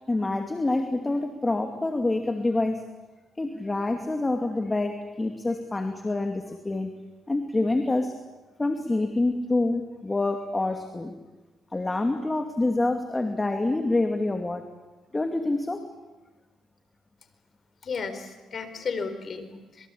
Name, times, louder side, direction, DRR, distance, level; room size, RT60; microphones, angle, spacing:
voice 1, 0.1-2.9 3.4-6.9 7.3-8.2 8.6-11.2 11.7-14.6 15.1-15.8, left 2 dB, 20° left, 5 dB, 2.5 m, -26 dB
voice 2, 17.8-19.9, left 5 dB, 45° left, 9 dB, 4.4 m, -34 dB
26.5 x 23.0 x 8.6 m, 1.2 s
cardioid pair, 90°, 0 cm